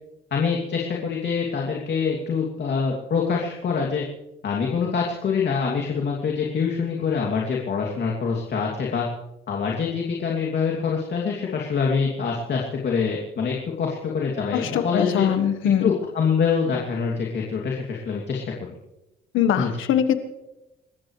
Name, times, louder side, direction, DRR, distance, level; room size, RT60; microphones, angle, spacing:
voice 1, 0.3-4.0 4.4-9.1 9.5-15.3 15.8-18.5 19.6-19.7, left 5 dB, 60° left, -2 dB, 2.9 m, -25 dB
voice 2, 14.5-15.9 19.3-20.1, left 9 dB, 85° left, 9 dB, 1.5 m, -22 dB
28.5 x 14.5 x 3.3 m, 0.96 s
cardioid pair, 90°, 20 cm